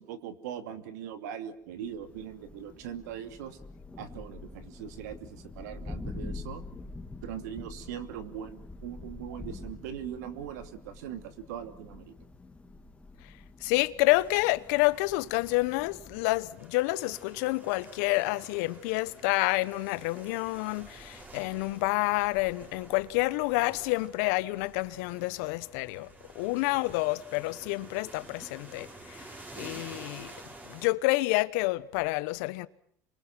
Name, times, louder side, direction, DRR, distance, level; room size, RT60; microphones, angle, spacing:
voice 1, 0.0-3.6 4.0-6.6 7.2-12.1, right 9 dB, 85° right, 2.7 m, -40 dB
Thunder, 1.8-16.4, left 2 dB, 15° left, 2.5 m, -45 dB
voice 2, 13.6-26.1 26.3-29.2 29.6-30.3 30.7-32.7, left 21 dB, 80° left, 1.1 m, -28 dB
sound 1, 14.1-30.9, right 2 dB, 20° right, 5.0 m, -50 dB
28.0 x 24.0 x 6.1 m
supercardioid pair, 100°, 9 cm